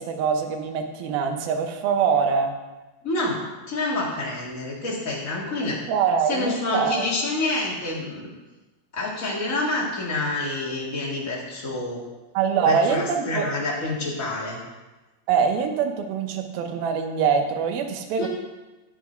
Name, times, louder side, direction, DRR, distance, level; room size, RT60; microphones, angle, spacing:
voice 1, 0.0-2.5 5.6-7.1 12.3-13.5 15.3-18.3, right 6 dB, 70° right, 5 dB, 2.5 m, -24 dB
voice 2, 3.0-3.4 3.7-5.8 6.3-8.3 8.9-12.0 12.6-14.6 18.2-18.3, left 2 dB, 75° left, -5 dB, 0.7 m, -27 dB
11.5 x 8.2 x 4.4 m, 1.1 s
omnidirectional pair, 5.1 m